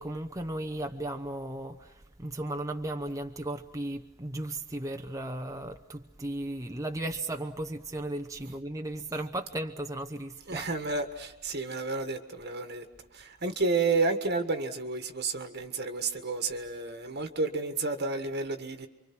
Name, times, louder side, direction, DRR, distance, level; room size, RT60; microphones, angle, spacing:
voice 1, 0.0-1.9 2.2-10.6, right 1 dB, 15° right, 0.8 m, -35 dB
voice 2, 10.5-12.8 13.1-18.9, right 3 dB, 45° right, 1.5 m, -31 dB
29.0 x 24.5 x 6.0 m
head